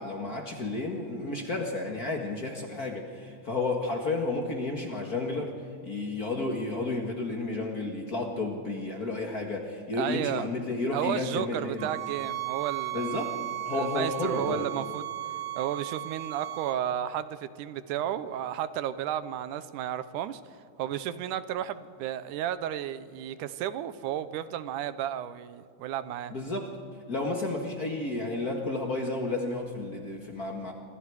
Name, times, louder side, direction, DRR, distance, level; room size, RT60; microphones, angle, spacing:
voice 1, 0.0-5.5 5.8-11.9 12.9-13.4 13.7-14.6 26.3-26.7 27.1-30.7, left 2 dB, 35° left, 2 dB, 1.7 m, -32 dB
voice 2, 10.0-10.5 10.9-13.1 13.7-15.1 15.6-20.4 20.8-26.3, right 11 dB, 85° right, 13 dB, 2.3 m, -33 dB
sound 1, 11.8-16.8, right 14 dB, 65° right, 2.4 m, -35 dB
26.5 x 25.0 x 4.8 m, 2.4 s
omnidirectional pair, 3.6 m